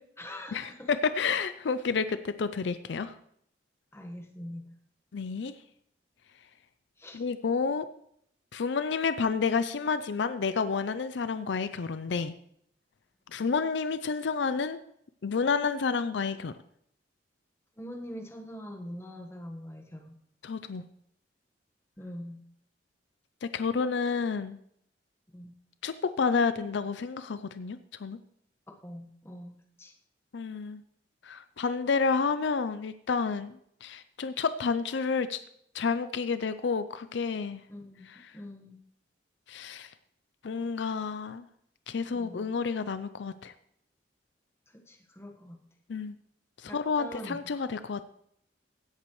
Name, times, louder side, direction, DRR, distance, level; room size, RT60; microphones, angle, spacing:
voice 1, 0.0-0.9 3.9-4.7 7.0-7.2 17.8-20.2 22.0-22.4 25.3-25.5 28.8-29.9 37.7-38.8 42.1-42.5 44.7-45.6 46.7-47.5, equal, 15° left, 1 dB, 1.4 m, -43 dB
voice 2, 0.5-3.2 5.1-5.5 7.1-7.9 8.5-12.3 13.3-14.8 15.2-16.5 20.4-20.8 23.4-24.6 25.8-28.2 30.3-30.8 31.2-35.4 35.7-37.6 38.1-38.4 39.5-39.9 40.4-41.5 41.9-43.5 45.9-46.2 46.6-48.1, left 5 dB, 70° left, 12 dB, 0.5 m, -30 dB
16.5 x 8.3 x 3.2 m, 0.70 s
head